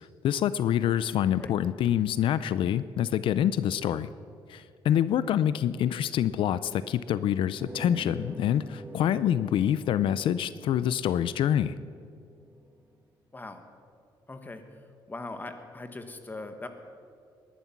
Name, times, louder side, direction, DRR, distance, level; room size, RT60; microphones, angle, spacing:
voice 1, 0.2-4.1 4.5-11.7, left 10 dB, 75° left, 15 dB, 0.5 m, -26 dB
sound 1, 7.5-12.8, right 2 dB, 20° right, 1.2 m, -47 dB
voice 2, 13.3-13.6 14.3-16.7, left 2 dB, 20° left, 7 dB, 1.6 m, -41 dB
19.5 x 11.5 x 6.0 m, 2.3 s
cardioid pair, 100°, 9 cm